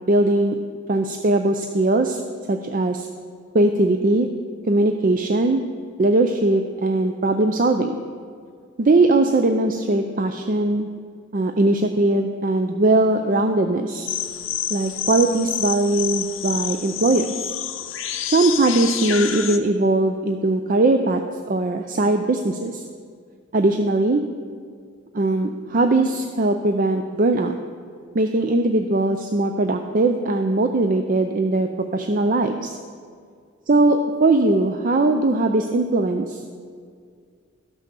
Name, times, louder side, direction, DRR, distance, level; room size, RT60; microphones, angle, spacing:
voice 1, 0.1-0.6 0.9-2.2 2.5-3.1 3.5-4.3 4.6-5.6 6.0-8.0 8.8-10.9 11.3-14.1 14.7-17.5 18.3-21.2 21.5-22.8 23.5-24.2 25.1-27.6 28.1-32.8 33.7-36.4, right 2 dB, 40° right, 6 dB, 0.5 m, -20 dB
sound 1, 14.1-19.6, left 10 dB, 85° left, 0.7 m, -28 dB
13.0 x 6.3 x 6.9 m, 2.2 s
head